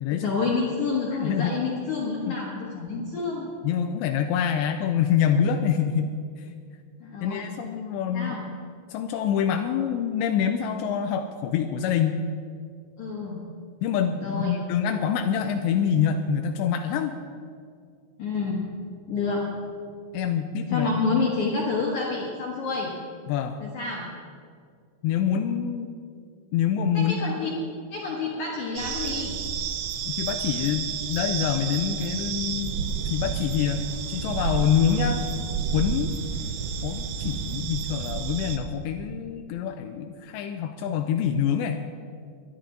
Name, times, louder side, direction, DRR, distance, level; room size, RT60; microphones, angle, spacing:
voice 1, 0.1-3.5 7.0-7.5 8.1-8.4 13.0-13.4 14.2-14.6 18.2-18.6 19.1-19.5 20.7-22.9 23.6-24.0 26.9-27.5 27.9-29.4, left 4 dB, 55° left, -4 dB, 2.3 m, -28 dB
voice 2, 1.2-1.5 2.0-2.4 3.6-6.4 7.2-8.4 8.9-12.2 13.8-17.1 20.1-21.2 23.3-23.6 25.0-25.9 26.5-27.2 30.1-32.8 33.1-35.2 35.7-36.2 36.8-41.8, left 8 dB, 85° left, 6 dB, 2.8 m, -26 dB
sound 1, 28.8-38.6, right 6 dB, 75° right, 2.3 m, -30 dB
22.5 x 10.5 x 3.9 m, 2.2 s
omnidirectional pair, 5.1 m